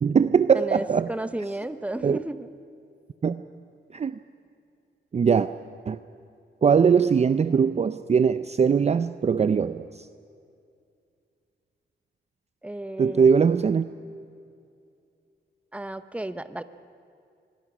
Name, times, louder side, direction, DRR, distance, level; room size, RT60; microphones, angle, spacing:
voice 1, 0.0-1.1 2.0-2.2 3.2-3.4 3.9-4.2 5.1-5.5 5.9-6.0 6.6-10.1 13.0-13.9, right 6 dB, 35° right, 12 dB, 0.5 m, -21 dB
voice 2, 0.5-2.5 12.6-13.3 15.7-16.6, right 1 dB, 5° right, 12 dB, 0.8 m, -33 dB
26.0 x 21.5 x 6.1 m, 2.5 s
wide cardioid pair, 115°, 19 cm